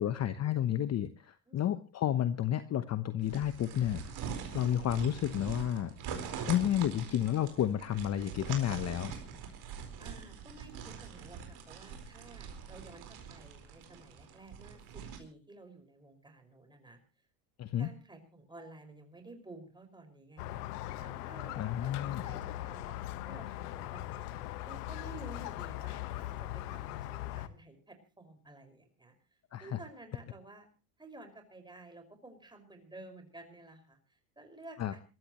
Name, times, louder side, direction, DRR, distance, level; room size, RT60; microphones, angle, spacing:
voice 1, 0.0-5.9 6.5-9.1 17.6-17.9 21.6-22.2 29.5-29.8 34.8-34.9, left 11 dB, 35° left, 11 dB, 1.0 m, -31 dB
sound 1, 3.2-15.2, right 7 dB, 55° right, 4.6 m, -43 dB
voice 2, 10.0-17.0 17.8-20.7 21.0-24.2 24.6-29.1 29.6-30.7 31.0-35.0, right 2 dB, 10° right, 6 dB, 5.6 m, -53 dB
Squeak, 20.4-27.5, left 14 dB, 80° left, 1.4 m, -40 dB
27.5 x 14.0 x 3.1 m, 0.32 s
supercardioid pair, 100°, 46 cm